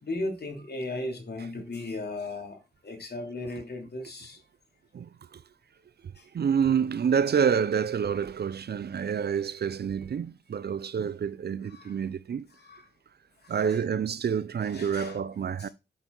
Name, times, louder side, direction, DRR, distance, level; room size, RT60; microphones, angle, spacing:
voice 1, 0.0-4.4 6.2-6.3 11.6-12.0 12.6-12.9 13.4-13.8 14.6-15.2 15.6-15.7, left 2 dB, 60° left, 3.2 m, -36 dB
voice 2, 4.9-5.4 6.0-12.5 13.5-15.7, right 7 dB, 60° right, 0.5 m, -28 dB
7.2 x 5.5 x 3.9 m
cardioid pair, 45°, 19 cm